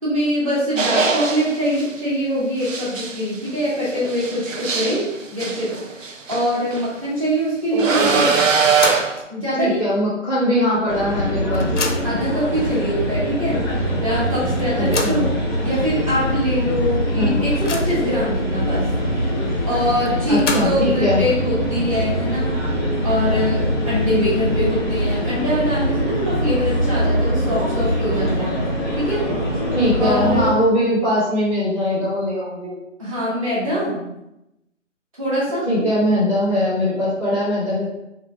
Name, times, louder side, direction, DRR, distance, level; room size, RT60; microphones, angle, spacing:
voice 1, 0.0-5.0 5.3-5.7 6.3-8.3 9.3-9.8 12.0-13.6 14.0-15.3 15.6-18.8 19.7-22.5 23.0-28.6 29.0-29.2 30.0-30.6 33.0-34.0 35.2-35.7, equal, 25° right, -9 dB, 1.2 m, -23 dB
sound 1, 0.8-1.9 2.6-6.9 7.8-9.2, right 5 dB, 75° right, 0.6 m, -22 dB
voice 2, 7.7-8.2 9.6-11.7 14.7-15.3 17.1-17.4 20.3-20.7 21.0-21.2 29.7-32.7 35.6-37.8, equal, 5° right, -16 dB, 0.9 m, -21 dB
sound 2, 8.5-9.2 9.6-9.7 10.8-10.9 11.2-12.3 13.0-13.1 13.5-13.6 14.6-15.3 16.0-16.1 16.5-16.6 17.1-18.1 20.1-21.0, left 4 dB, 65° left, 0.6 m, -28 dB
sound 3, 10.9-30.5, equal, 20° left, 0.7 m, -23 dB
3.0 x 2.5 x 3.3 m, 0.89 s
figure-of-eight pair, 160°, 38 cm